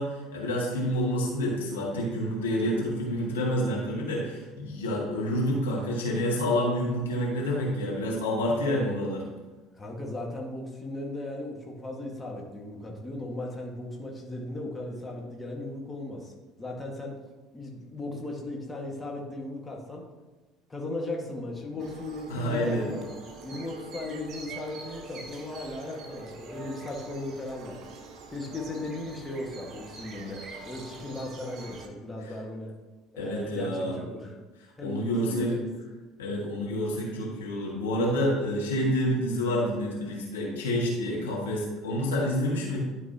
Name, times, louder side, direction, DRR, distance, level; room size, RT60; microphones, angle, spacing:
voice 1, 0.0-9.3 22.3-22.8 33.2-34.0 34.8-35.6 36.2-42.8, equal, 80° left, -3 dB, 1.6 m, -28 dB
voice 2, 9.7-17.2 17.5-20.0 20.7-23.1 23.4-27.9 28.3-32.7 33.1-34.4 34.8-35.7, left 2 dB, 20° left, -1 dB, 1.6 m, -37 dB
sound 1, 21.8-31.9, right 3 dB, 45° right, 1.0 m, -44 dB
11.5 x 4.7 x 2.8 m, 1.2 s
figure-of-eight pair, 65°, 0 cm